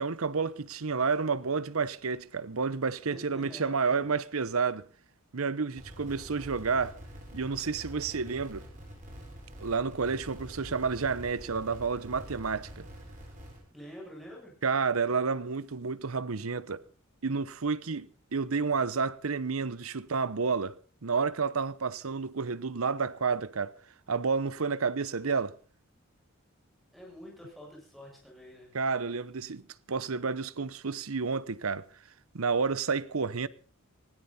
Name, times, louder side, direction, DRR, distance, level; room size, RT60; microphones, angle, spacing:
voice 1, 0.0-4.9 5.3-7.0 7.3-8.7 9.6-12.9 14.6-16.8 17.2-23.8 24.1-25.5 28.7-31.9 32.3-33.5, right 5 dB, 90° right, 0.9 m, -30 dB
voice 2, 3.1-4.1 13.7-14.5 26.9-28.7, equal, ahead, 7.7 m, -47 dB
sound 1, 5.7-13.6, equal, 35° right, 7.4 m, -46 dB
19.5 x 17.0 x 4.2 m
head